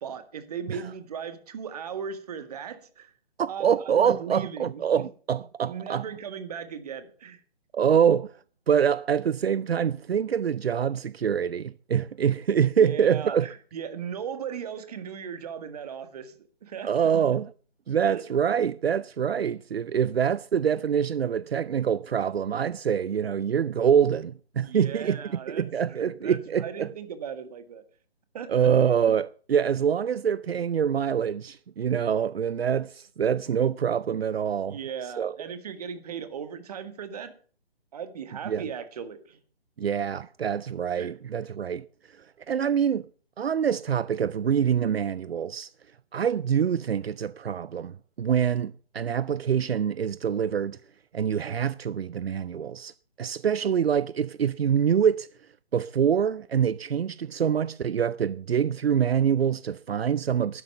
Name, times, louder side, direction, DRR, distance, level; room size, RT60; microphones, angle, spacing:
voice 1, 0.0-3.1 3.5-5.0 5.7-7.4 12.8-16.3 16.6-16.9 18.1-18.2 24.6-25.7 26.0-27.8 28.3-28.5 34.7-37.3 37.9-39.4 41.0-41.1, right 7 dB, 40° right, 1.9 m, -37 dB
voice 2, 3.4-6.1 7.7-8.4 8.7-13.5 16.8-17.5 17.9-26.9 28.5-34.8 35.2-35.4 38.5-38.7 39.8-43.1 43.4-45.7 46.1-50.8 51.1-52.9 53.2-55.3 55.7-60.6, right 8 dB, 75° right, 0.5 m, -25 dB
12.0 x 11.0 x 6.8 m
figure-of-eight pair, 145°, 31 cm